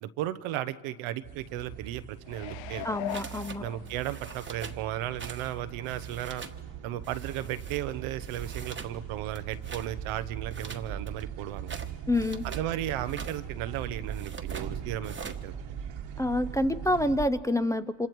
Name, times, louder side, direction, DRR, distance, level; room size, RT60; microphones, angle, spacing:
voice 1, 0.0-2.9 3.6-6.4 6.8-11.8 12.4-15.6, right 12 dB, 85° right, 12 dB, 0.9 m, -35 dB
sound 1, 1.2-17.2, right 9 dB, 65° right, 1.6 m, -40 dB
sound 2, 2.3-4.3 4.8-4.9, left 12 dB, 65° left, 0.6 m, -39 dB
voice 2, 2.8-3.6 12.1-12.4 16.2-18.1, left 1 dB, 5° left, 9 dB, 0.6 m, -27 dB
sound 3, 3.1-3.6 3.8-4.8 5.2-5.5 5.8-6.6 7.0-7.8 8.2-8.9 9.3-9.9 10.5-12.7 13.0-13.4 14.1-14.7 15.0-15.4, right 5 dB, 25° right, 1.3 m, -44 dB
28.0 x 26.0 x 4.6 m, 1.3 s
cardioid pair, 95°, 48 cm